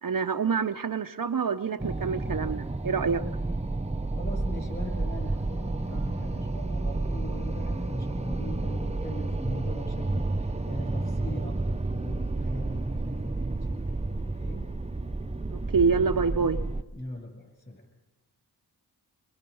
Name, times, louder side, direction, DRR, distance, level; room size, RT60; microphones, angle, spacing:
voice 1, 0.0-3.2 15.5-16.6, right 5 dB, 50° right, 8 dB, 0.7 m, -27 dB
sound 1, 1.8-16.8, right 2 dB, 15° right, 0.8 m, -31 dB
voice 2, 4.1-13.8 14.2-14.7 16.9-17.9, left 1 dB, 25° left, 2 dB, 7.9 m, -41 dB
26.0 x 21.5 x 5.4 m, 1.1 s
wide cardioid pair, 50°, 42 cm